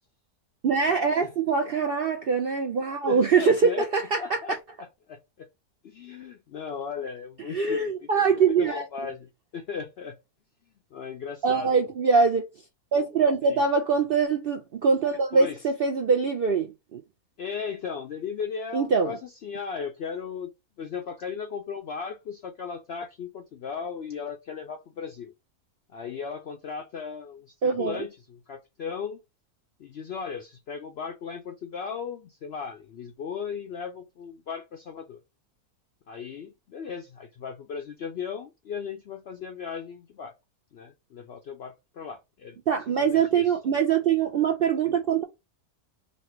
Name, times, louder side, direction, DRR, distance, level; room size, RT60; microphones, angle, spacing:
voice 1, 0.6-4.4 7.5-8.8 11.4-12.4 12.9-17.0 18.7-19.1 27.6-28.0 42.7-45.2, right 5 dB, 65° right, 0.5 m, -23 dB
voice 2, 1.2-1.5 3.0-3.9 4.2-4.6 5.1-5.5 5.8-10.2 10.9-11.7 13.4-13.6 15.3-15.7 17.4-20.5 20.8-25.3 25.9-29.2 29.8-35.2 36.1-40.3 40.7-42.6 43.0-43.5, left 6 dB, 70° left, 0.6 m, -36 dB
3.2 x 2.7 x 4.2 m
omnidirectional pair, 1.6 m